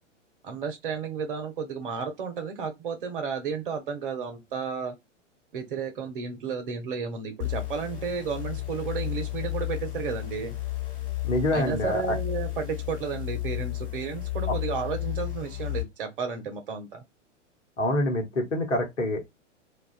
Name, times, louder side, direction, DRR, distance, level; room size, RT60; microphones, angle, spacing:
voice 1, 0.4-4.9 5.5-10.5 11.5-17.0, right 6 dB, 45° right, 0.7 m, -32 dB
sound 1, 7.4-15.8, left 17 dB, 45° left, 1.3 m, -33 dB
voice 2, 11.2-12.2 17.8-19.3, left 1 dB, 75° left, 1.0 m, -26 dB
2.4 x 2.3 x 2.2 m
figure-of-eight pair, 105°, 37 cm